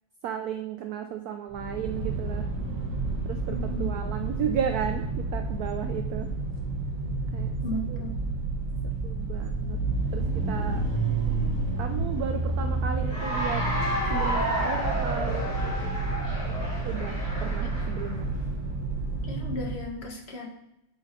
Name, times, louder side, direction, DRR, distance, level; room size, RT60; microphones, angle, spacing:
voice 1, 0.2-2.5 3.2-6.3 7.3-7.5 7.9-8.0 9.0-9.8 10.1-10.9 11.8-13.6 14.1-15.6 16.8-18.3, right 8 dB, 75° right, 6 dB, 0.9 m, -34 dB
sound 1, 1.5-19.9, right 3 dB, 45° right, 1.3 m, -30 dB
voice 2, 3.5-3.9 7.6-8.1 19.2-20.5, equal, 35° left, 0 dB, 1.3 m, -35 dB
Cheering / Applause, 13.0-18.2, equal, 10° left, 2.8 m, -31 dB
8.1 x 5.1 x 4.2 m, 0.85 s
omnidirectional pair, 2.2 m